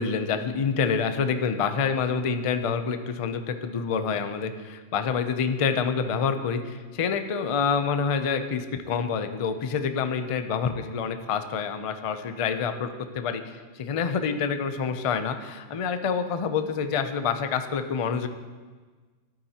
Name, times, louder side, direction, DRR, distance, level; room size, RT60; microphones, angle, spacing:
voice 1, 0.0-18.3, left 6 dB, 55° left, 9 dB, 0.3 m, -27 dB
12.0 x 8.8 x 2.9 m, 1.4 s
omnidirectional pair, 1.3 m